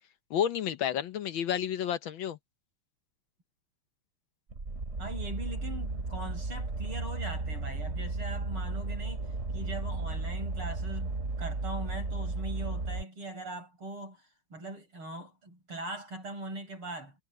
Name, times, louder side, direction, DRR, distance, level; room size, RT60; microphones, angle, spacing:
voice 1, 0.3-2.4, left 9 dB, 70° left, 1.6 m, -30 dB
sound 1, 4.5-13.0, right 3 dB, 35° right, 3.2 m, -34 dB
voice 2, 5.0-9.2 9.5-17.2, right 2 dB, 80° right, 7.3 m, -41 dB
omnidirectional pair, 2.4 m